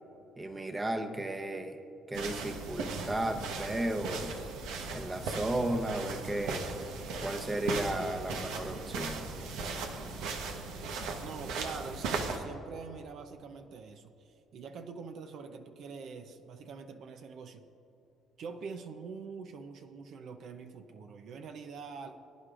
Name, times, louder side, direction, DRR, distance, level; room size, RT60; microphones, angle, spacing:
voice 1, 0.4-1.8 2.1-4.4 4.9-6.7 7.2-9.3, right 1 dB, 20° right, 6 dB, 0.9 m, -34 dB
sound 1, 2.1-12.4, right 4 dB, 90° right, 1.1 m, -37 dB
voice 2, 11.2-17.6 18.4-22.1, right 5 dB, 65° right, 7 dB, 0.6 m, -45 dB
21.0 x 9.9 x 2.5 m, 2.9 s
cardioid pair, 110°, 0 cm